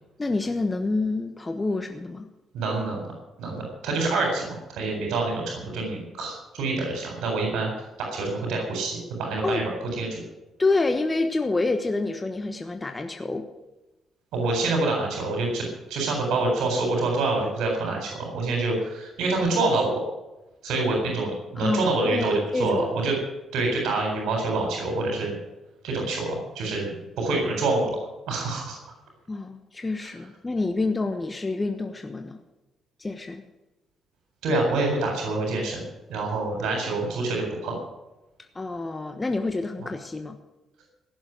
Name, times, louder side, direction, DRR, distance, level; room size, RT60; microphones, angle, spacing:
voice 1, 0.2-2.3 9.4-9.6 10.6-13.5 21.6-23.1 29.3-32.4 33.0-33.4 38.5-40.4, left 3 dB, 20° left, 6 dB, 1.2 m, -27 dB
voice 2, 2.5-3.0 3.4-7.7 8.0-10.2 14.3-20.0 20.6-23.2 23.5-25.3 25.8-26.9 27.2-28.0 28.3-28.8 30.0-30.1 34.4-35.8 36.1-37.7, right 3 dB, 80° right, 0 dB, 3.9 m, -26 dB
16.0 x 7.2 x 9.3 m, 1.0 s
cardioid pair, 90°, 0 cm